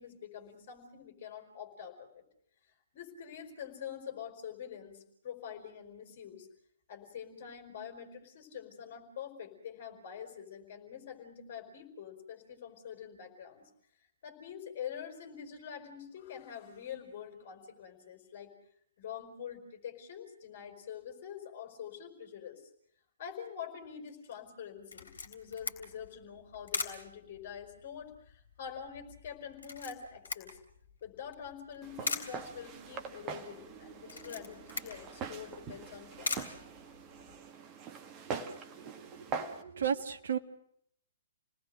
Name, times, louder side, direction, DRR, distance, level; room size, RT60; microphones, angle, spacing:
voice 1, 0.0-2.2 2.9-6.5 6.9-13.7 14.2-18.5 19.0-22.6 23.2-30.5 31.0-36.3, left 8 dB, 45° left, 5 dB, 5.1 m, -45 dB
Camera, 24.9-37.4, left 4 dB, 65° left, 3.3 m, -43 dB
Walk footsteps, 31.8-39.6, right 5 dB, 25° right, 1.7 m, -43 dB
voice 2, 38.3-40.4, right 8 dB, 55° right, 9 dB, 1.5 m, -36 dB
29.5 x 19.5 x 6.5 m, 0.68 s
figure-of-eight pair, 125°, 0 cm